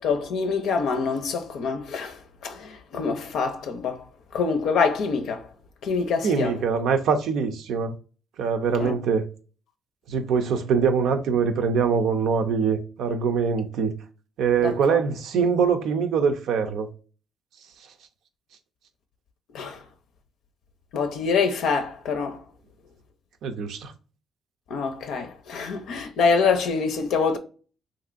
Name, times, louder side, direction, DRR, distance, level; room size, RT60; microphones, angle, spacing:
voice 1, 0.0-2.2 2.4-4.0 4.3-5.5 5.8-6.5 8.8-8.9 14.6-15.0 19.5-19.8 20.9-22.4 24.7-27.4, left 5 dB, 80° left, 0.5 m, -25 dB
voice 2, 6.2-7.9 8.4-9.2 10.1-13.9 14.4-16.9 23.4-23.9, right 6 dB, 80° right, 0.5 m, -23 dB
3.1 x 2.6 x 2.5 m
cardioid pair, 90°, 0 cm